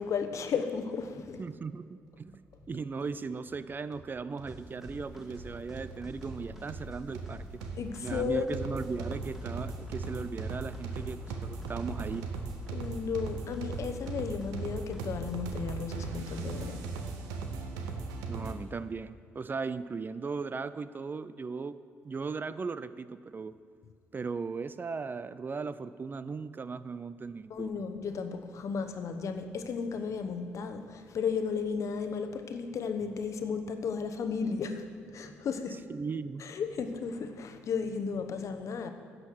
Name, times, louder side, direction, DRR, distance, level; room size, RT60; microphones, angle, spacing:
voice 1, 0.0-1.4 7.8-8.5 12.7-16.8 27.5-35.8 36.4-38.9, left 5 dB, 60° left, 8 dB, 0.9 m, -34 dB
voice 2, 1.4-7.5 8.0-12.3 18.3-21.8 22.0-23.5 24.1-27.7 35.9-36.4, right 4 dB, 35° right, 14 dB, 0.4 m, -37 dB
sound 1, 3.0-3.1 3.5-3.6 3.9-18.5, right 4 dB, 90° right, 0.9 m, -39 dB
sound 2, 4.5-15.6, left 1 dB, 5° right, 2.0 m, -48 dB
10.0 x 6.4 x 6.4 m, 2.1 s
supercardioid pair, 60°, 6 cm